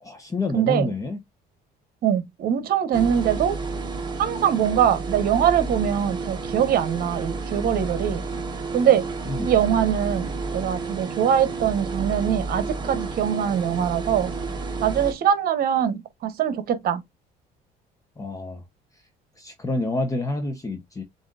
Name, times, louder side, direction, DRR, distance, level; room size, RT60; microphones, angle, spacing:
voice 1, 0.0-1.2 9.3-9.5 18.2-18.6 19.4-21.0, left 2 dB, 20° left, 0.9 m, -28 dB
voice 2, 0.5-0.9 2.0-3.5 4.2-8.2 8.7-9.0 9.4-14.3 14.8-17.0, right 9 dB, 60° right, 1.1 m, -22 dB
sound 1, 2.9-15.1, right 3 dB, 25° right, 1.2 m, -31 dB
7.5 x 2.7 x 2.5 m
cardioid pair, 110°, 17 cm